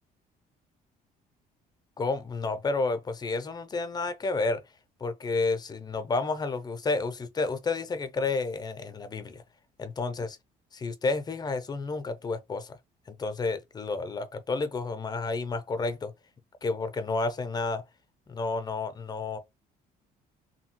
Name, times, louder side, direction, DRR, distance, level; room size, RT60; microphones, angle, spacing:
voice 1, 2.0-4.6 5.0-9.4 9.8-10.4 10.7-12.8 13.1-16.1 16.6-17.8 18.3-19.4, left 3 dB, 25° left, 0.5 m, -30 dB
2.7 x 2.7 x 2.9 m
cardioid pair, 110°, 17 cm